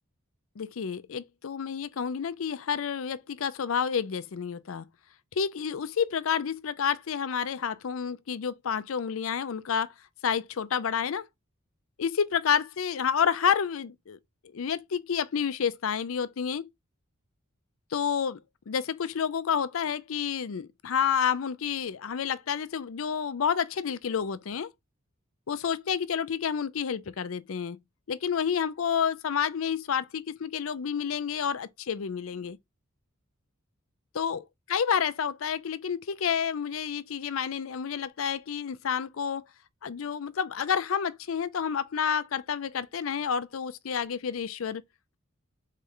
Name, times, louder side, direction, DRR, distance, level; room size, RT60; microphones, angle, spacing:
voice 1, 0.6-4.8 5.3-9.9 10.2-11.3 12.0-14.2 14.5-16.6 17.9-18.4 18.7-24.7 25.5-27.8 28.1-32.6 34.1-39.4 39.8-44.8, left 7 dB, 75° left, 0.5 m, -29 dB
4.0 x 3.2 x 3.8 m
head